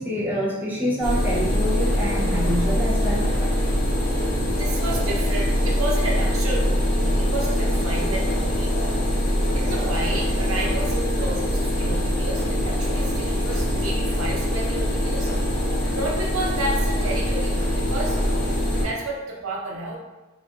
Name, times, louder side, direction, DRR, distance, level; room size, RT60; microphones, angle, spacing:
voice 1, 0.0-3.3 9.2-9.4, equal, 10° right, -7 dB, 0.7 m, -26 dB
sound 1, 1.0-18.8, equal, 45° left, 1.2 m, -23 dB
voice 2, 4.6-8.8 9.5-15.3 15.9-18.2 18.8-20.0, right 1 dB, 85° right, -2 dB, 0.8 m, -31 dB
3.6 x 3.3 x 2.5 m, 1.1 s
head